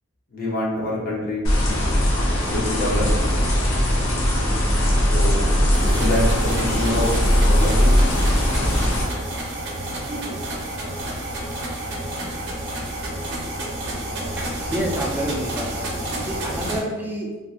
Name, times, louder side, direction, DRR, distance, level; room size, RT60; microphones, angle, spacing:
voice 1, 0.3-1.5 2.5-3.1 5.1-5.4 5.8-7.1 7.4-7.9, left 1 dB, 40° left, -5 dB, 0.7 m, -25 dB
sound 1, 1.4-9.0, equal, 80° left, 0.7 m, -19 dB
sound 2, 5.7-16.8, right 1 dB, 55° right, 0.6 m, -30 dB
voice 2, 10.1-10.4 14.4-17.3, right 1 dB, 10° right, -2 dB, 0.3 m, -29 dB
2.7 x 2.5 x 2.4 m, 1.3 s
head